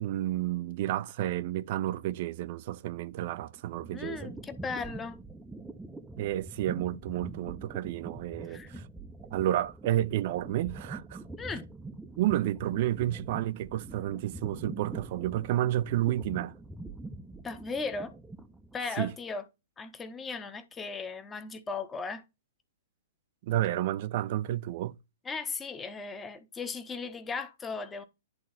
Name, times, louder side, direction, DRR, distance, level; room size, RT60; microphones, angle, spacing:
voice 1, 0.0-4.3 6.2-8.9 9.3-11.2 12.2-16.5 19.0-19.1 23.4-24.9, right 13 dB, 50° right, 0.6 m, -31 dB
sound 1, 3.6-18.8, right 2 dB, 5° right, 0.8 m, -44 dB
voice 2, 3.9-5.2 8.5-8.8 11.4-11.7 17.4-18.1 18.7-19.4 19.8-22.2 25.2-28.0, left 4 dB, 15° left, 1.2 m, -37 dB
11.0 x 3.8 x 4.1 m
hypercardioid pair, 115°, 0 cm